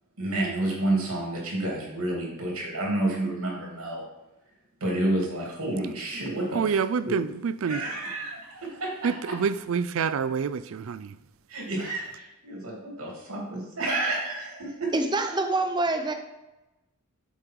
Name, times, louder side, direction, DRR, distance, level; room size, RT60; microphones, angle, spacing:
voice 1, 0.2-4.0 4.8-6.8 7.0-7.1 7.6-9.4 11.5-14.9, right 2 dB, 90° right, 2.8 m, -30 dB
voice 2, 6.5-7.8 9.0-11.2, right 6 dB, 65° right, 0.4 m, -27 dB
voice 3, 14.9-16.1, right 2 dB, 20° right, 0.6 m, -25 dB
7.2 x 5.2 x 4.6 m
head